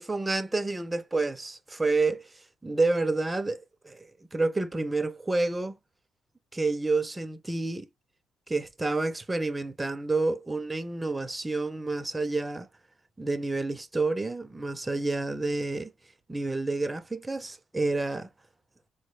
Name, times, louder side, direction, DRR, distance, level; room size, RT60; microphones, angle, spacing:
voice 1, 0.0-2.3 2.6-5.8 6.5-7.9 8.5-12.7 13.2-15.9 16.3-18.3, right 3 dB, 15° right, 0.5 m, -29 dB
3.9 x 2.0 x 3.0 m
cardioid pair, 90°, 0 cm